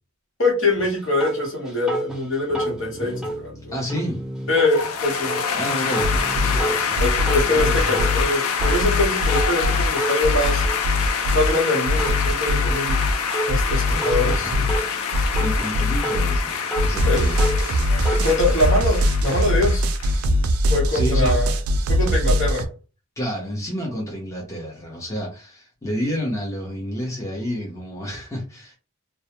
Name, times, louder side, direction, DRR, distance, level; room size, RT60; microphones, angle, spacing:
voice 1, 0.4-3.7 4.5-5.4 7.0-10.6 11.3-13.0 13.4-14.5 17.0-17.3 17.6-19.8 20.7-21.5 21.9-22.7, left 2 dB, 60° left, -1 dB, 1.1 m, -23 dB
sound 1, 0.8-0.9 1.2-4.8 5.2-8.1 8.4-8.9 9.3-9.5 10.0-10.2 10.6-11.5 12.0-12.3 12.7-13.6 14.0-15.7 16.0-16.9 17.4-18.4, right 1 dB, ahead, 0.3 m, -30 dB
voice 2, 3.7-4.2 5.5-6.1 13.8-14.4 15.4-16.5 16.8-17.4 20.9-21.4 23.2-28.7, equal, 15° left, -3 dB, 0.7 m, -29 dB
sound 2, 4.7-20.2, left 6 dB, 85° left, 0.5 m, -26 dB
sound 3, 6.0-6.6 7.0-8.2 8.6-9.8 10.2-11.5 11.9-13.1 13.5-14.7 15.1-16.4 16.8-22.6, left 1 dB, 75° right, 0.4 m, -21 dB
2.2 x 2.1 x 2.9 m, 0.34 s
head